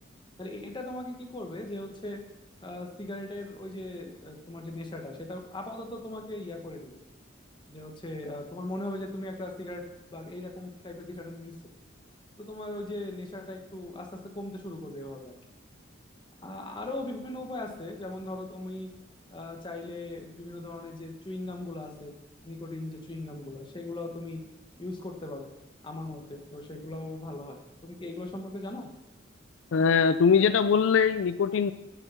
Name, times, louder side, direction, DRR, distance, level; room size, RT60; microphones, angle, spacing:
voice 1, 0.4-2.2 2.6-7.0 7.7-9.8 10.1-11.5 12.4-15.3 16.4-18.9 19.3-22.1 22.4-24.4 24.8-25.5 25.8-28.9, left 1 dB, 25° left, 3 dB, 1.2 m, -39 dB
voice 2, 29.7-31.7, left 6 dB, 70° left, 12 dB, 0.4 m, -22 dB
8.3 x 8.2 x 5.6 m, 0.97 s
head